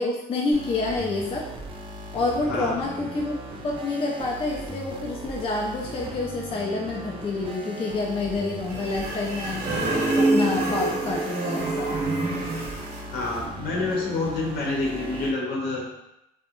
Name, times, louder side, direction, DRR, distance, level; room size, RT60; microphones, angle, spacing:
voice 1, 0.0-1.5 2.1-3.3 3.6-9.7 10.1-12.0, left 3 dB, 35° left, -2 dB, 0.4 m, -28 dB
sound 1, 0.5-15.3, right 2 dB, 30° right, 0.4 m, -38 dB
voice 2, 2.5-2.8 13.1-15.8, left 3 dB, 70° left, -2 dB, 0.8 m, -27 dB
sound 2, 8.7-13.1, right 2 dB, 85° right, 0.6 m, -26 dB
2.5 x 2.0 x 2.9 m, 0.87 s
cardioid pair, 110°, 17 cm